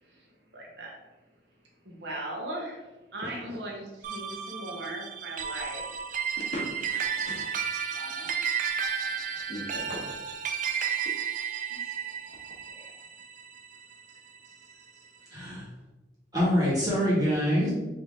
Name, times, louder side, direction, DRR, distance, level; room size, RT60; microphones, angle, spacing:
voice 1, 0.0-1.0 1.8-5.8 7.9-8.3 12.8-12.9 14.4-15.0, right 1 dB, 70° right, -2 dB, 0.9 m, -39 dB
sound 1, 4.0-14.6, right 7 dB, 45° right, 0.3 m, -33 dB
voice 2, 6.4-7.7 9.0-9.1 9.5-10.0, equal, 45° left, -4 dB, 1.2 m, -39 dB
voice 3, 15.3-15.7 16.3-17.7, equal, 20° right, -8 dB, 1.4 m, -25 dB
3.7 x 2.8 x 3.6 m, 1.1 s
head